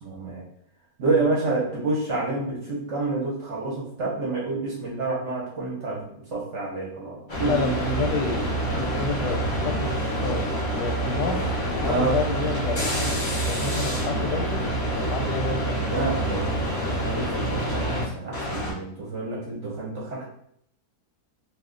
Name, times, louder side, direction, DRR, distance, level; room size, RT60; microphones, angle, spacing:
voice 1, 0.0-0.4 1.0-7.7 8.0-8.1 11.8-12.2 15.9-20.2, right 3 dB, 55° right, -4 dB, 0.9 m, -28 dB
sound 1, 7.3-18.0 18.3-18.7, right 1 dB, 35° left, 0.7 m, -27 dB
voice 2, 7.4-15.8, left 3 dB, 85° left, 4 dB, 1.2 m, -30 dB
2.5 x 2.3 x 3.6 m, 0.68 s
omnidirectional pair, 1.8 m